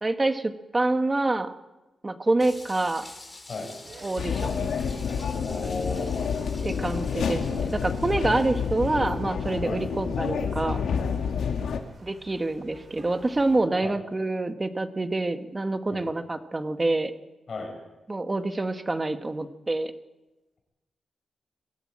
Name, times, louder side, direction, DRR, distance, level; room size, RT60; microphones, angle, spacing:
voice 1, 0.0-1.5 2.0-3.0 4.0-4.7 6.6-10.8 12.0-17.1 18.1-19.9, right 2 dB, 20° right, 8 dB, 1.5 m, -27 dB
sound 1, 2.4-9.2, left 2 dB, 20° left, 3.9 m, -48 dB
sound 2, 3.8-13.6, right 3 dB, 50° right, 4.7 m, -49 dB
sound 3, 4.2-11.8, left 6 dB, 85° left, 2.1 m, -29 dB
voice 2, 5.4-6.4 9.6-9.8 11.3-11.5 13.8-14.0 15.9-16.1 17.5-17.7, left 3 dB, 45° left, 3 dB, 7.0 m, -35 dB
23.0 x 15.5 x 8.8 m, 1.1 s
wide cardioid pair, 130°, 0 cm